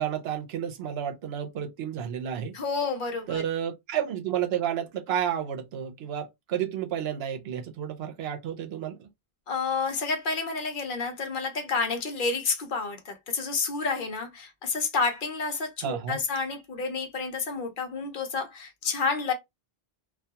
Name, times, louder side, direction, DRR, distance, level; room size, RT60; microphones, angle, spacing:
voice 1, 0.0-2.6 3.3-9.1 15.8-16.2, right 9 dB, 80° right, 0.8 m, -31 dB
voice 2, 2.5-3.4 9.5-19.3, left 4 dB, 60° left, 0.7 m, -30 dB
2.3 x 2.2 x 2.7 m
omnidirectional pair, 1.0 m